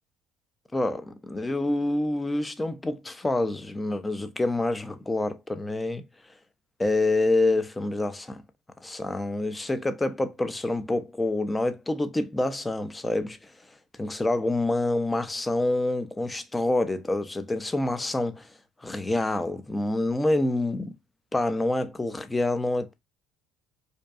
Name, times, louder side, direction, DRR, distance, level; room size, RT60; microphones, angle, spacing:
voice 1, 0.7-6.0 6.8-8.4 8.8-13.5 14.0-18.5 18.8-20.9 21.3-22.9, left 2 dB, 15° left, 0.4 m, -27 dB
2.6 x 2.2 x 2.2 m
supercardioid pair, 80°, 0 cm